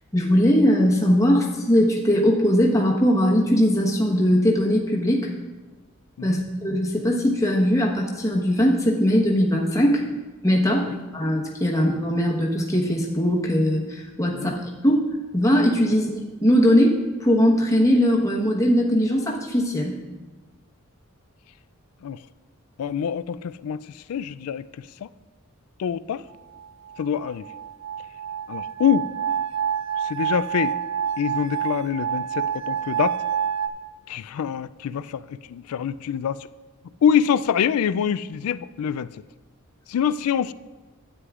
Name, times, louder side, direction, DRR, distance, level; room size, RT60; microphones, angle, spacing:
voice 1, 0.1-5.3 6.2-10.0 10.4-10.8 11.1-15.0 15.3-16.1 16.4-16.9 17.2-19.9, equal, 15° left, -2 dB, 1.2 m, -20 dB
voice 2, 22.8-24.7 25.0-25.1 25.8-26.2 27.0-27.5 28.5-29.1 30.0-30.7 31.2-33.2 34.1-36.4 37.0-39.1 39.9-40.5, left 8 dB, 80° left, 15 dB, 0.3 m, -25 dB
sound 1, 26.6-33.7, right 8 dB, 60° right, 0.5 m, -28 dB
12.5 x 9.4 x 2.5 m, 1.2 s
head